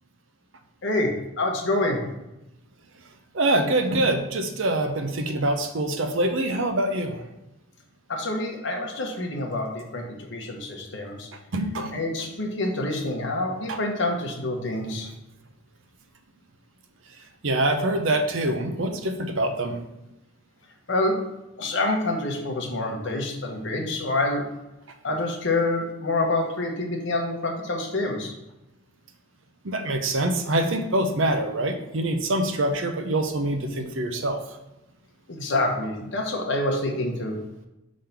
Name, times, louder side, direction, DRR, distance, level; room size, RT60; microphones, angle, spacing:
voice 1, 0.8-2.0 8.1-11.3 11.9-15.1 20.9-21.2 21.6-24.5 25.0-28.3 35.3-37.4, left 2 dB, 60° left, 1 dB, 1.2 m, -27 dB
voice 2, 3.3-7.2 11.5-12.0 13.7-13.8 17.4-19.8 29.6-34.4, right 1 dB, 65° right, 6 dB, 0.8 m, -25 dB
5.2 x 3.8 x 5.7 m, 0.95 s
head